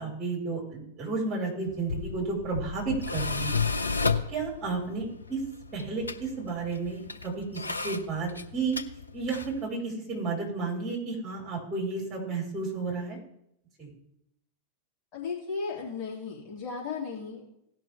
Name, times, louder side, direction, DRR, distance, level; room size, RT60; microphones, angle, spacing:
voice 1, 0.0-4.0 4.3-5.4 5.7-8.8 9.1-13.2 13.8-13.9, right 4 dB, 25° right, -3 dB, 4.8 m, -32 dB
Tools, 1.7-9.6, left 4 dB, 80° left, 0.5 m, -33 dB
voice 2, 15.1-17.5, left 5 dB, 35° left, -4 dB, 2.9 m, -35 dB
17.5 x 6.1 x 3.5 m, 0.76 s
figure-of-eight pair, 90°, 0 cm